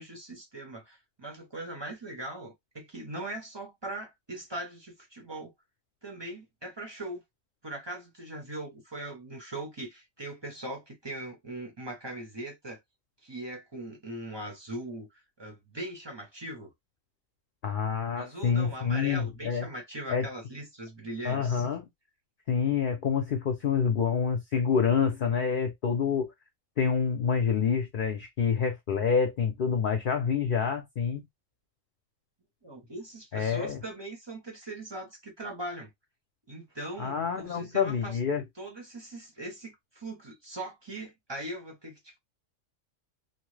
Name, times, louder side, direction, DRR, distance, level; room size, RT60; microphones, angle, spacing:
voice 1, 0.0-5.5 6.0-7.2 7.6-12.8 13.2-16.7 18.2-21.8 32.6-35.9 36.5-38.2 38.6-42.2, right 1 dB, 25° right, 0.6 m, -40 dB
voice 2, 17.6-19.7 20.1-20.3 21.2-21.8 22.5-26.3 26.8-31.3 33.3-33.8 37.0-38.4, left 6 dB, 55° left, 0.6 m, -27 dB
2.9 x 2.1 x 3.2 m
omnidirectional pair, 1.4 m